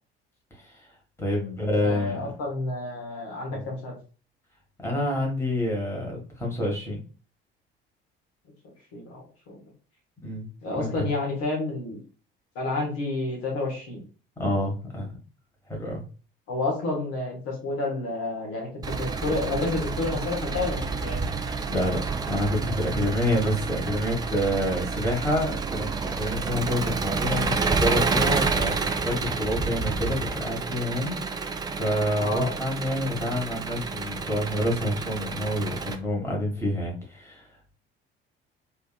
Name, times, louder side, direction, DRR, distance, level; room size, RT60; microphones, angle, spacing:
voice 1, 0.5-0.9 1.2-2.3 3.5-3.6 4.8-7.0 10.2-11.0 14.4-15.1 15.7-16.0 21.7-28.8 29.0-31.4 31.7-37.5, left 1 dB, 10° left, -2 dB, 1.4 m, -28 dB
voice 2, 1.6-4.0 8.9-9.6 10.6-12.0 12.5-14.0 16.5-21.3 32.2-32.6, left 2 dB, 55° left, -1 dB, 1.3 m, -30 dB
Engine, 18.8-36.0, right 4 dB, 15° right, 0.3 m, -29 dB
3.5 x 2.8 x 2.2 m, 0.36 s
figure-of-eight pair, 55°, 30 cm